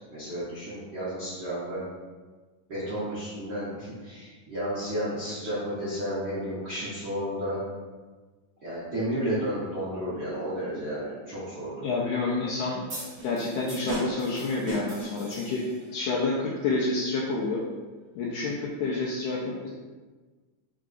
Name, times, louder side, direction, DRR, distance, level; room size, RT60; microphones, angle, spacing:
voice 1, 0.1-1.8 2.7-7.6 8.6-11.9, equal, 90° right, -12 dB, 0.9 m, -32 dB
voice 2, 11.8-12.8 13.2-15.6 15.9-17.6 18.2-19.7, left 3 dB, 80° left, -5 dB, 1.8 m, -28 dB
sound 1, 12.9-16.0, equal, 40° right, 1.5 m, -36 dB
4.8 x 3.7 x 2.5 m, 1.3 s
omnidirectional pair, 3.8 m